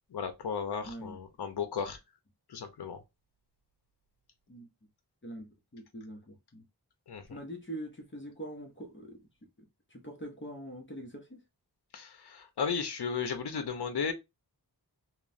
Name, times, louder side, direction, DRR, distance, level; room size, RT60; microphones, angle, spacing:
voice 1, 0.1-2.0 2.5-3.0 7.1-7.4 11.9-14.1, left 6 dB, 75° left, 0.7 m, -35 dB
voice 2, 0.8-1.2 4.5-4.7 5.2-6.6 7.3-9.2 9.9-11.4, right 1 dB, 30° left, 0.7 m, -43 dB
2.9 x 2.1 x 2.5 m
wide cardioid pair, 75°, 40 cm